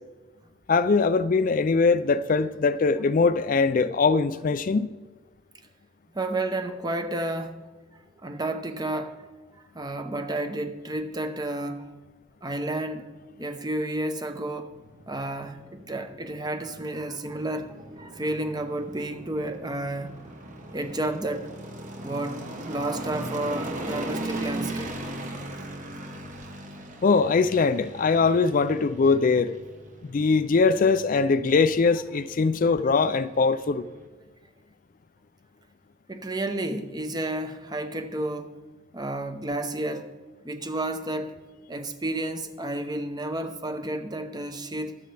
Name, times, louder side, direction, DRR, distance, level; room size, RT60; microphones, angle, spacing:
voice 1, 0.7-4.9 27.0-29.5 30.1-33.8, left 4 dB, 40° left, 0.4 m, -22 dB
voice 2, 6.1-7.6 8.2-9.2 9.7-11.9 12.4-13.1 13.4-14.8 15.1-20.1 20.7-21.5 22.0-24.9 26.1-26.2 36.1-38.6 38.9-40.1 40.4-41.3 41.7-45.0, right 1 dB, 20° right, 0.8 m, -31 dB
sound 1, 14.7-34.1, right 1 dB, 40° right, 1.2 m, -39 dB
23.0 x 7.7 x 3.4 m
head